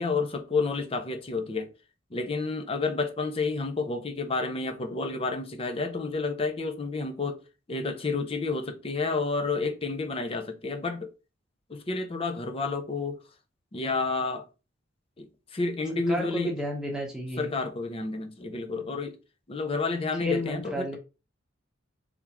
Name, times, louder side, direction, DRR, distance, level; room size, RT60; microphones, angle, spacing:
voice 1, 0.0-1.7 2.1-7.4 7.7-11.1 11.7-13.2 13.7-14.4 15.2-16.5 17.4-19.2 19.5-21.0, left 3 dB, 30° left, 0.6 m, -30 dB
voice 2, 15.9-17.6 20.2-21.0, equal, 5° right, 1.0 m, -32 dB
3.6 x 3.5 x 3.0 m
head